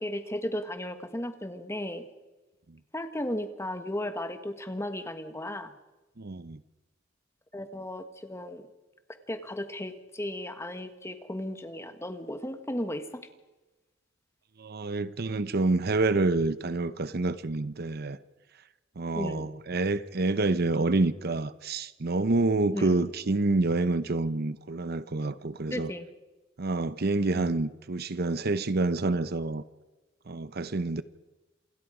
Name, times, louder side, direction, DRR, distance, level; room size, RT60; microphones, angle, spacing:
voice 1, 0.0-2.1 2.9-5.7 7.5-8.7 9.3-13.2 19.1-19.5 22.7-23.1 25.7-26.1 27.4-27.5, left 1 dB, 15° left, 9 dB, 1.5 m, -35 dB
voice 2, 6.2-6.6 14.6-18.2 19.0-25.9 26.6-29.6 30.3-31.0, right 2 dB, 55° right, 14 dB, 0.7 m, -27 dB
28.0 x 21.0 x 5.0 m, 1.1 s
head